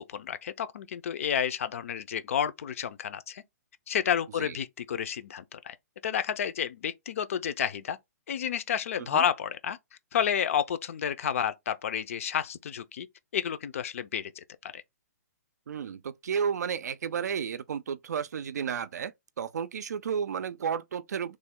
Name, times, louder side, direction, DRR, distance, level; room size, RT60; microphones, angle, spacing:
voice 1, 0.0-3.4 3.9-5.8 6.0-8.0 8.3-9.8 10.1-13.1 13.3-14.8, left 8 dB, 55° left, 0.5 m, -30 dB
voice 2, 15.7-21.4, right 7 dB, 80° right, 0.4 m, -32 dB
3.1 x 2.2 x 3.5 m
hypercardioid pair, 165°, 9 cm